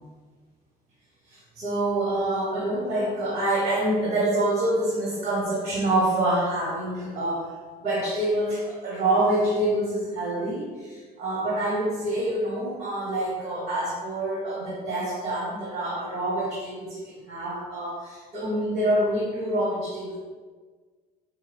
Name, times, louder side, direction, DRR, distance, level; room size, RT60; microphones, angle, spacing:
voice 1, 1.3-7.5 7.8-20.2, right 1 dB, 75° right, -5 dB, 1.3 m, -26 dB
4.6 x 3.3 x 3.4 m, 1.4 s
cardioid pair, 110°, 17 cm